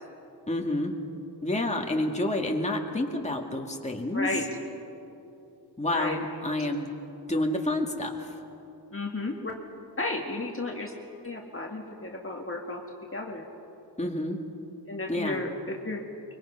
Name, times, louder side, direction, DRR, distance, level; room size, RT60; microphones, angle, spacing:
voice 1, 0.5-0.9 1.4-4.3 5.8-6.9 7.3-8.3 14.0-14.4 15.1-15.4, left 1 dB, 15° left, 1 dB, 2.1 m, -29 dB
voice 2, 4.1-4.5 5.9-6.3 8.9-9.6 10.0-10.9 11.2-12.8 13.1-13.5 14.9-16.0, left 2 dB, 30° left, 0 dB, 1.8 m, -33 dB
24.0 x 23.5 x 5.7 m, 2.9 s
wide cardioid pair, 85°, 40 cm